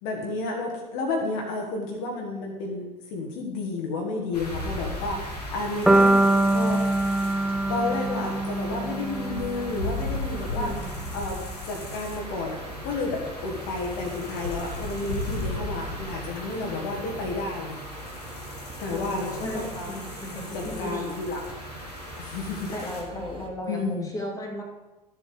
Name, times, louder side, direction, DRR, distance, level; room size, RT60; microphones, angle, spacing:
voice 1, 0.0-6.2 6.5-6.8 7.7-10.8 11.1-11.4 11.7-17.8 18.8-19.9 20.5-21.4 22.2-22.9 23.6-24.1, left 3 dB, 55° left, 1 dB, 1.8 m, -31 dB
sound 1, 4.3-23.0, left 2 dB, 80° left, 1.7 m, -37 dB
sound 2, 4.7-23.5, right 1 dB, 25° right, 1.9 m, -42 dB
sound 3, 5.9-10.0, right 2 dB, ahead, 0.5 m, -23 dB
voice 2, 10.6-10.9 18.9-21.2 22.7-24.6, equal, 15° left, 0 dB, 2.4 m, -35 dB
13.0 x 7.1 x 4.9 m, 1.1 s
figure-of-eight pair, 65°, 20 cm